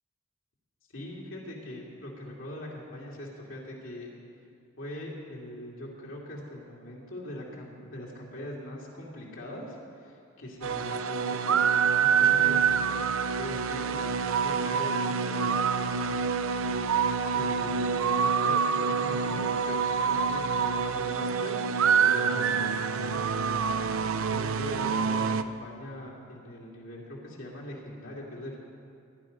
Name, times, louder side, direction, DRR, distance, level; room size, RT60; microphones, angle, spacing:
voice 1, 0.9-4.1 4.8-11.6 12.0-13.0 13.4-16.1 16.6-17.1 17.3-22.6 22.9-23.8 24.2-28.6, left 1 dB, 75° left, -4 dB, 2.7 m, -42 dB
sound 1, 10.6-25.4, right 6 dB, 80° right, 0.6 m, -26 dB
17.0 x 10.5 x 5.3 m, 2.4 s
head